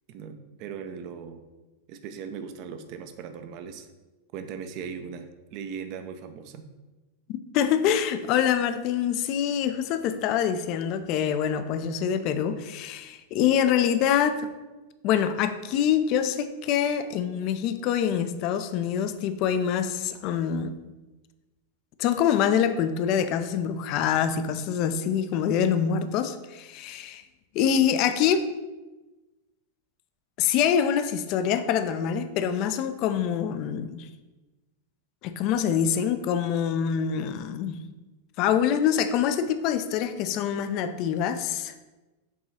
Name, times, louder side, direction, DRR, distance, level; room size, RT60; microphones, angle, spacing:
voice 1, 0.1-1.4 1.9-3.9 4.3-6.7, right 6 dB, 45° right, 8 dB, 0.6 m, -39 dB
voice 2, 7.5-14.5 15.0-20.7 22.0-27.2 27.5-28.5 30.4-34.1 35.2-37.8 38.4-41.7, left 8 dB, 40° left, 11 dB, 0.5 m, -25 dB
7.3 x 3.8 x 4.2 m, 1.1 s
figure-of-eight pair, 90°, 0 cm